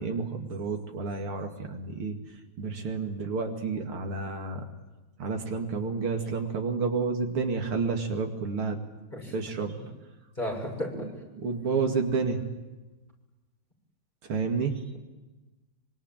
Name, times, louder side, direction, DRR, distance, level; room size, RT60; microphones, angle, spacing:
voice 1, 0.0-4.6 5.2-8.8 9.3-9.8 10.9-12.4 14.2-14.8, right 4 dB, 85° right, 4 dB, 3.2 m, -30 dB
voice 2, 10.4-11.1, equal, 20° left, 0 dB, 6.9 m, -33 dB
25.0 x 24.5 x 9.0 m, 1.1 s
omnidirectional pair, 2.3 m